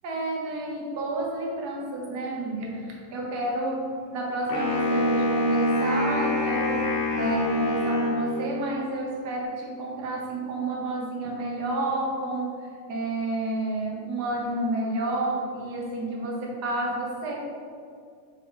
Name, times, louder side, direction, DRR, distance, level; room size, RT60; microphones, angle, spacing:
voice 1, 0.0-6.9 7.2-17.4, right 2 dB, 65° right, -2 dB, 0.9 m, -30 dB
Wind instrument woodwind instrument, 4.5-8.7, left 1 dB, 75° left, 2.6 m, -25 dB
8.5 x 3.7 x 4.8 m, 2.2 s
omnidirectional pair, 3.3 m